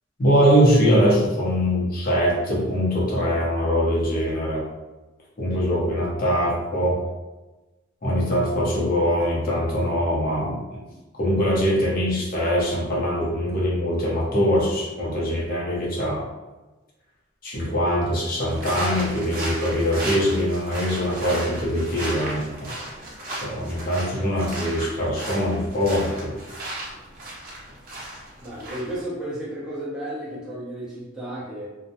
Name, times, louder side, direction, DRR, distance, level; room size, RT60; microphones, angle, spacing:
voice 1, 0.2-4.6 5.4-7.0 8.0-10.6 11.2-16.3 17.4-22.7 23.4-26.3, equal, 45° left, -5 dB, 0.7 m, -22 dB
sound 1, 18.5-29.0, right 1 dB, 45° right, 0.7 m, -35 dB
voice 2, 28.4-31.7, right 1 dB, 5° right, -9 dB, 0.7 m, -33 dB
2.3 x 2.0 x 2.8 m, 1.1 s
head